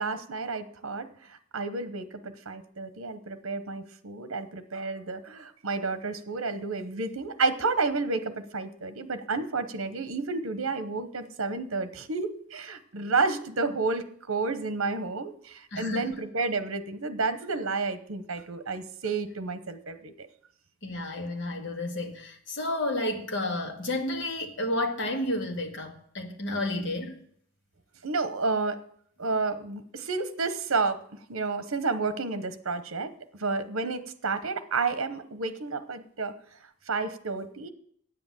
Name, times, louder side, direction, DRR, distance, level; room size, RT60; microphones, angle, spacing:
voice 1, 0.0-20.3 28.0-28.8 29.2-31.0 31.3-33.1 33.4-36.3 36.9-37.7, right 4 dB, 75° right, 12 dB, 0.9 m, -31 dB
voice 2, 15.7-16.1 20.8-27.2, left 1 dB, 55° left, 3 dB, 1.9 m, -31 dB
9.4 x 7.8 x 7.5 m, 0.63 s
head